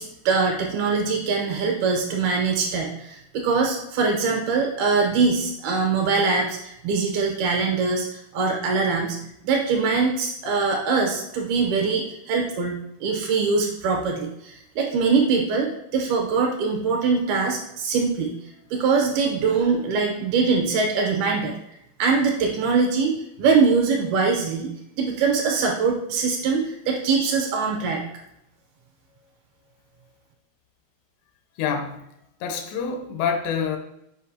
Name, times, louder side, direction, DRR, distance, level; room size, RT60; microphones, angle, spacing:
voice 1, 0.0-8.1 8.3-9.2 9.4-18.3 18.7-21.6 22.0-28.0, right 4 dB, 75° right, 0 dB, 2.7 m, -23 dB
voice 2, 31.6-32.1 32.4-33.8, left 6 dB, 90° left, 5 dB, 2.8 m, -26 dB
7.9 x 5.2 x 2.7 m, 0.80 s
omnidirectional pair, 5.0 m